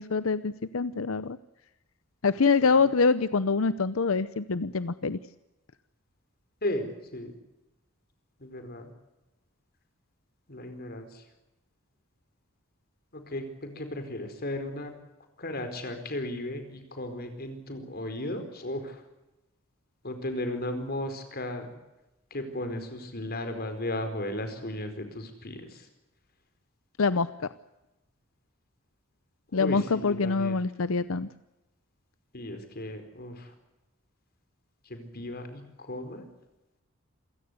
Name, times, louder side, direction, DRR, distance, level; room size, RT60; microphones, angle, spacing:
voice 1, 0.0-1.4 2.2-5.2 27.0-27.3 29.5-31.3, left 4 dB, 90° left, 14 dB, 0.7 m, -25 dB
voice 2, 6.6-7.4 8.4-8.9 10.5-11.2 13.1-14.9 15.4-19.0 20.0-21.7 22.3-25.9 29.5-30.6 32.3-33.5 34.9-36.2, left 1 dB, 50° left, 8 dB, 4.6 m, -35 dB
28.0 x 16.5 x 8.2 m, 0.99 s
head